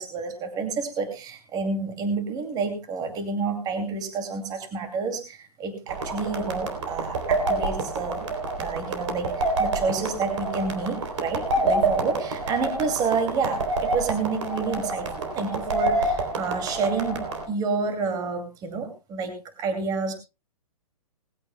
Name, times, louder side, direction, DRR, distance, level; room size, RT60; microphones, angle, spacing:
voice 1, 0.0-8.3 8.6-20.1, right 4 dB, 20° right, 6 dB, 2.5 m, -29 dB
sound 1, 5.9-17.5, right 2 dB, 50° right, 3.3 m, -28 dB
20.0 x 15.0 x 2.2 m, 0.29 s
figure-of-eight pair, 120°, 20 cm